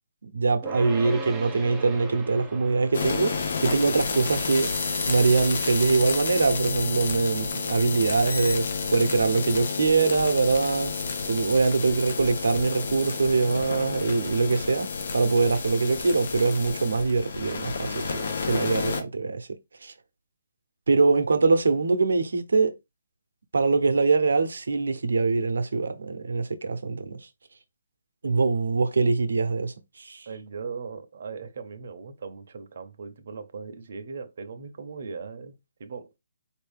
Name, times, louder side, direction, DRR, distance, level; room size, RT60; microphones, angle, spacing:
voice 1, 0.2-4.7 5.1-10.9 11.3-19.5 19.8-19.9 20.9-22.7 23.5-27.3 28.2-30.3, right 4 dB, 85° right, 0.7 m, -23 dB
sound 1, 0.6-11.9, right 3 dB, 10° right, 0.4 m, -43 dB
sound 2, 2.9-19.0, left 4 dB, 55° left, 0.7 m, -30 dB
voice 2, 30.3-36.1, right 5 dB, 50° right, 0.7 m, -39 dB
4.3 x 2.7 x 3.4 m
hypercardioid pair, 170°, 0 cm